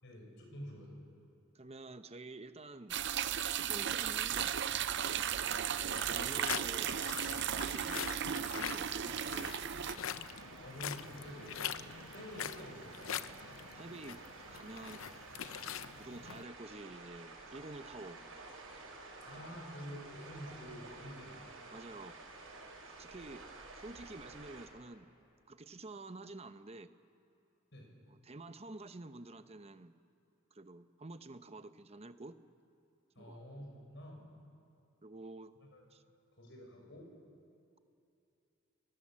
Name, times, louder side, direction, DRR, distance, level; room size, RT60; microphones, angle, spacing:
voice 1, 0.0-1.0 10.6-11.6 12.1-13.2 19.2-21.4 27.7-27.9 33.1-34.3 35.7-35.8 36.4-37.1, equal, 60° left, 1 dB, 6.1 m, -48 dB
voice 2, 1.5-3.0 3.5-4.5 5.8-6.9 7.5-9.6 13.7-15.0 16.0-18.2 19.3-19.6 21.7-22.1 22.9-23.4 23.8-25.1 25.5-26.9 28.1-30.0 30.5-32.4 33.2-33.7 35.0-35.5 35.9-36.0, right 2 dB, 30° right, 10 dB, 0.8 m, -49 dB
sound 1, 2.9-10.0, right 9 dB, 60° right, 0.6 m, -35 dB
sound 2, 5.0-24.7, right 3 dB, 85° right, 5.8 m, -52 dB
sound 3, 5.9-16.4, left 8 dB, 75° left, 0.7 m, -44 dB
30.0 x 20.0 x 7.6 m, 2.7 s
head